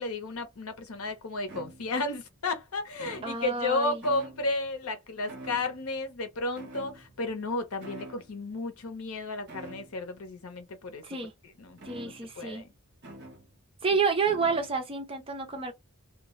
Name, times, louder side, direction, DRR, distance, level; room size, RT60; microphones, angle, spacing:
voice 1, 0.0-11.0 11.4-12.7, left 2 dB, 80° left, 0.8 m, -33 dB
sound 1, 1.5-2.2 2.9-3.7 4.0-4.7 5.3-6.0 6.6-7.4 7.8-8.3 9.5-10.1 11.8-12.5 13.0-13.5 14.3-14.8, right 1 dB, 55° right, 0.9 m, -46 dB
voice 2, 3.2-4.0 11.0-11.3 11.8-12.6 13.8-15.7, right 5 dB, 25° right, 0.6 m, -29 dB
2.2 x 2.2 x 3.1 m
head